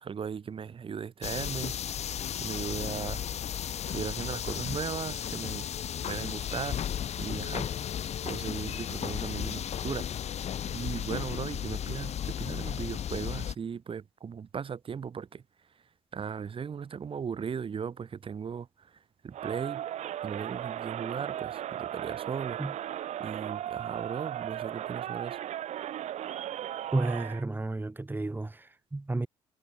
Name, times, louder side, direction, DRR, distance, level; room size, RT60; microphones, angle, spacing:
voice 1, 0.0-1.7 2.4-3.2 3.9-5.7 6.1-6.8 7.2-7.7 8.2-10.1 10.7-15.4 16.1-19.8 20.2-22.6 23.2-25.4, right 6 dB, 45° right, 2.7 m, -37 dB
sound 1, 1.2-13.5, left 9 dB, 60° left, 3.7 m, -34 dB
Crowd, 19.3-27.4, right 11 dB, 70° right, 1.6 m, -36 dB
voice 2, 26.9-29.3, right 2 dB, 15° right, 2.0 m, -32 dB
supercardioid pair, 75°, 12 cm